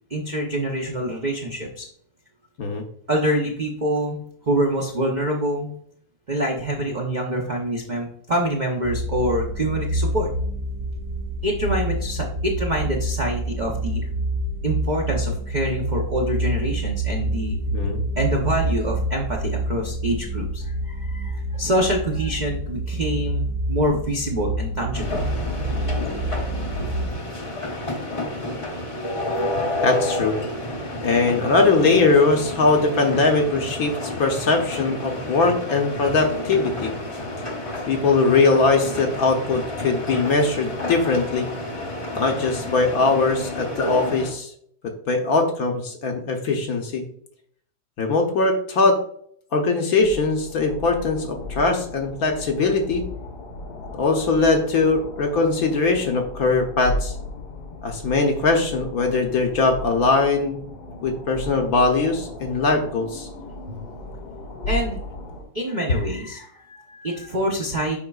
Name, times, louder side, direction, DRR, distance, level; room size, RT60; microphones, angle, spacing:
voice 1, 0.1-1.9 3.1-5.7 6.3-10.3 11.4-14.0 14.6-17.6 18.2-25.2 64.7-65.0 65.5-68.0, right 1 dB, 70° right, -1 dB, 0.4 m, -26 dB
sound 1, 8.8-27.1, right 1 dB, 40° right, 1.3 m, -27 dB
sound 2, 24.9-44.3, left 1 dB, 35° left, 0.5 m, -30 dB
voice 2, 29.8-30.4 31.0-36.9 37.8-41.5 42.2-44.5 44.8-47.0 48.0-49.0 49.5-53.1 54.0-57.1 57.8-60.6 61.0-63.3, left 3 dB, 60° left, 3 dB, 1.0 m, -21 dB
sound 3, 50.0-65.4, left 1 dB, 85° left, 1.9 m, -35 dB
7.5 x 5.3 x 2.3 m, 0.63 s
omnidirectional pair, 2.1 m